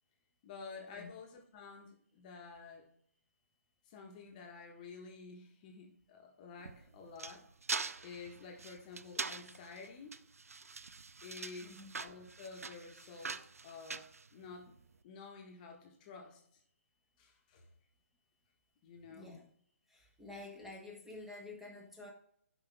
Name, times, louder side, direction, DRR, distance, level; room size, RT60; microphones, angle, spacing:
voice 1, 0.4-2.9 3.8-7.5 8.0-10.2 11.2-14.8 15.0-16.6 17.2-17.7 18.8-19.3, left 4 dB, 30° left, 2 dB, 1.5 m, -51 dB
sound 1, 6.6-14.8, right 4 dB, 75° right, 0.6 m, -43 dB
voice 2, 11.6-11.9 19.1-19.4 19.9-22.1, left 2 dB, 5° right, -1 dB, 1.7 m, -49 dB
11.5 x 5.4 x 3.6 m, 0.66 s
figure-of-eight pair, 135°, 8 cm